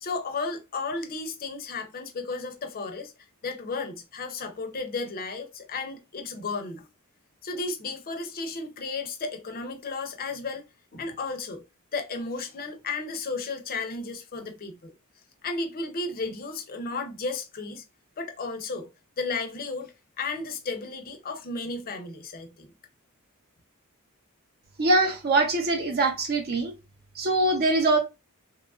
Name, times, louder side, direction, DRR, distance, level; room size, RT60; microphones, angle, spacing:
voice 1, 0.0-3.1 3.4-6.9 7.4-10.6 10.9-11.6 11.9-14.9 15.4-17.8 18.2-18.9 19.2-22.7, left 3 dB, 40° left, 0.5 m, -33 dB
voice 2, 24.8-26.7 27.2-28.0, right 2 dB, 45° right, 0.6 m, -23 dB
2.9 x 2.3 x 2.4 m
head